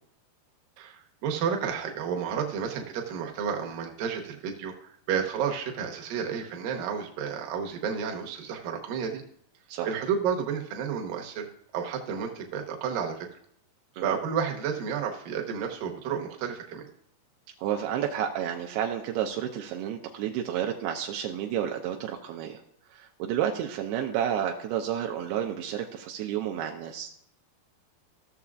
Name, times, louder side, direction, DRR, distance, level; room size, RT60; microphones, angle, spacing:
voice 1, 0.8-9.2 9.8-11.5 11.7-13.3 14.0-16.9, right 7 dB, 70° right, 2 dB, 2.5 m, -31 dB
voice 2, 17.6-22.6 22.9-27.1, right 10 dB, 85° right, 2 dB, 2.5 m, -31 dB
15.0 x 6.8 x 2.4 m, 0.71 s
omnidirectional pair, 4.6 m